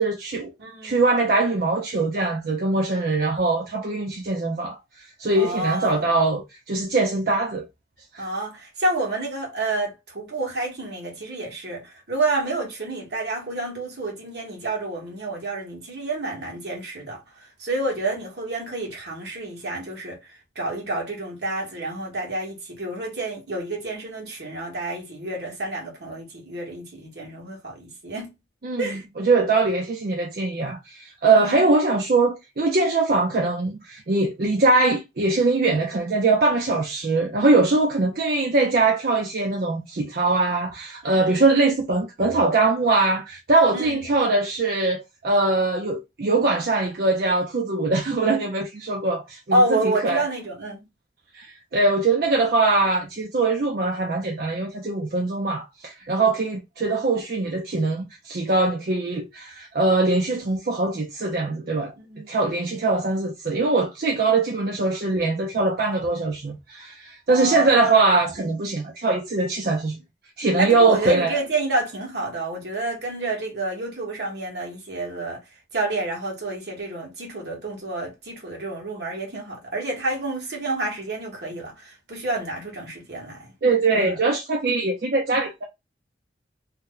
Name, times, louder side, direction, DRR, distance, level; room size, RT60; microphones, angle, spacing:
voice 1, 0.0-0.5 0.8-7.6 8.1-8.3 28.6-50.2 51.3-61.9 62.3-70.0 70.4-71.4 83.6-85.6, right 3 dB, 55° right, 0.5 m, -22 dB
voice 2, 0.6-1.0 5.4-6.1 8.2-17.2 17.6-20.2 20.5-28.3 28.8-29.0 31.3-31.7 41.0-41.4 43.7-44.0 49.5-50.9 62.0-62.4 67.3-67.8 70.6-75.4 75.7-83.5 83.9-84.2, right 2 dB, 75° right, 1.3 m, -29 dB
2.8 x 2.1 x 3.6 m
head